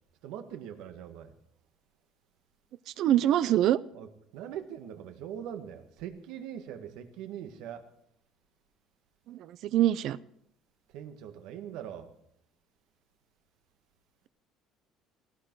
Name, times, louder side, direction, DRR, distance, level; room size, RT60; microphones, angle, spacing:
voice 1, 0.2-1.3 3.9-7.9 10.9-12.1, right 9 dB, 70° right, 7 dB, 1.8 m, -42 dB
voice 2, 3.0-3.8 9.3-10.2, right 12 dB, 50° right, 18 dB, 0.5 m, -24 dB
18.0 x 16.5 x 4.7 m, 0.74 s
cardioid pair, 180°, 0 cm